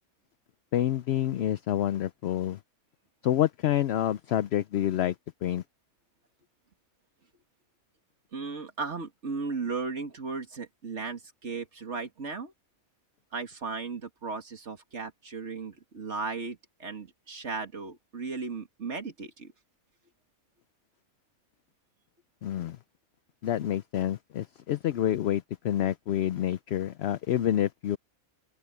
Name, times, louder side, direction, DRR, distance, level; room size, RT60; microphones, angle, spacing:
voice 1, 0.7-2.6 3.2-5.1 5.4-5.6 22.4-22.8 23.4-28.0, left 11 dB, 65° left, 0.7 m, -28 dB
voice 2, 8.3-12.5 13.3-19.5, right 4 dB, 55° right, 2.4 m, -36 dB
open air
omnidirectional pair, 1.4 m